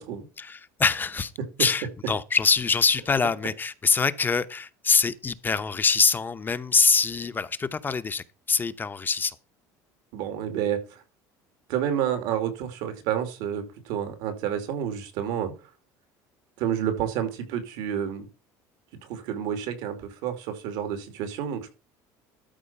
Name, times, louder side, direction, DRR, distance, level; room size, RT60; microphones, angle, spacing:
voice 1, 0.4-1.3 1.6-9.4, left 5 dB, 25° left, 0.7 m, -24 dB
voice 2, 10.1-11.0 11.7-15.5 16.6-18.3 19.0-21.7, right 9 dB, 80° right, 2.6 m, -29 dB
13.0 x 4.4 x 5.5 m
supercardioid pair, 110°, 9 cm